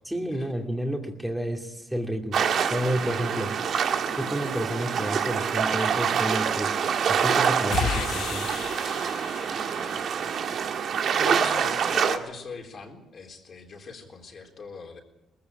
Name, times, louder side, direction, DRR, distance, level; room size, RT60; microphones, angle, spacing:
voice 1, 0.1-2.4 2.7-3.5 4.2-6.8 7.1-8.5, equal, 5° right, 2 dB, 2.5 m, -30 dB
sound 1, 2.3-12.2, right 7 dB, 65° right, 1.6 m, -26 dB
sound 2, 7.7-10.4, left 10 dB, 80° left, 0.6 m, -34 dB
voice 2, 11.2-15.0, left 4 dB, 50° left, 2 dB, 3.7 m, -39 dB
20.0 x 15.5 x 8.8 m, 0.97 s
cardioid pair, 90°, 0 cm